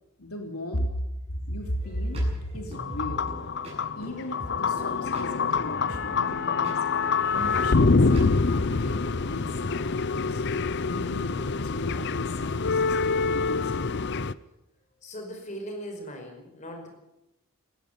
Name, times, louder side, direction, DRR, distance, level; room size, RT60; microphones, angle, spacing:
voice 1, 0.2-1.0 1.4-2.3 2.5-3.3 4.0-6.8 7.3-8.1 8.5-14.0, equal, 80° left, 3 dB, 3.2 m, -35 dB
sound 1, 1.8-8.8, equal, 25° right, 7.7 m, -41 dB
sound 2, 2.7-14.3, left 4 dB, 50° left, 0.6 m, -26 dB
voice 2, 15.0-16.9, equal, 35° left, 4 dB, 5.1 m, -39 dB
19.5 x 14.5 x 9.3 m, 0.90 s
head